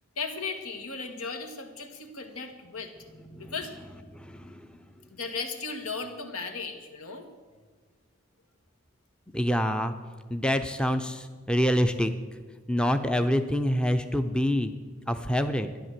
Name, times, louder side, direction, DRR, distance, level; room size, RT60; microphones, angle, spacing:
voice 1, 0.2-3.0 3.4-3.7 5.1-7.3, left 4 dB, 85° left, 5 dB, 1.8 m, -36 dB
voice 2, 4.1-4.8 9.3-9.9 10.3-12.1 12.7-14.7 15.1-15.7, equal, 5° left, 8 dB, 0.5 m, -26 dB
13.0 x 11.0 x 7.5 m, 1.5 s
head